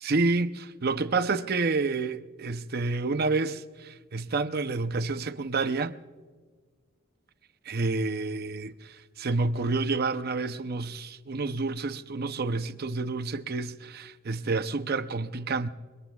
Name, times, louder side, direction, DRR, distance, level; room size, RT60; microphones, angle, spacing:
voice 1, 0.0-6.0 7.7-15.7, right 3 dB, 45° right, 0.6 m, -29 dB
25.0 x 23.5 x 2.4 m
head